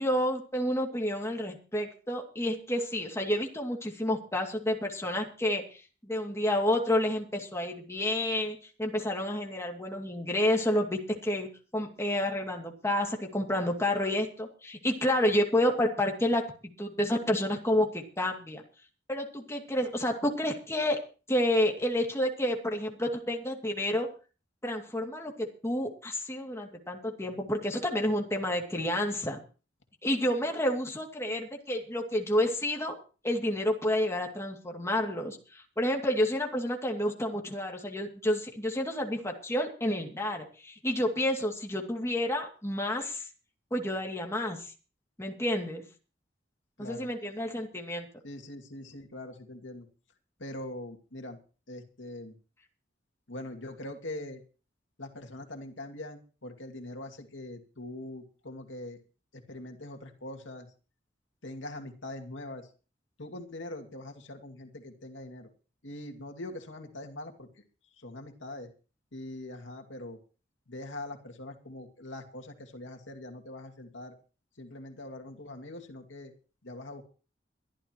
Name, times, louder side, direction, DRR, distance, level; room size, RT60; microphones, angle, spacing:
voice 1, 0.0-11.5 11.7-16.4 16.8-18.6 19.1-21.0 21.3-24.1 24.6-29.4 30.0-32.9 33.2-43.3 43.7-44.7 45.2-45.8 46.8-48.1, left 1 dB, 15° left, 1 dB, 2.5 m, -29 dB
voice 2, 46.8-47.1 48.2-49.9 50.4-51.4 51.7-52.4 53.3-54.4 55.0-59.0 59.3-60.7 61.4-62.7 63.2-65.5 65.8-67.6 67.9-68.7 69.1-70.2 70.7-74.1 74.6-76.3 76.6-77.0, left 1 dB, 75° left, 3 dB, 2.5 m, -42 dB
23.0 x 12.0 x 3.1 m, 0.36 s
head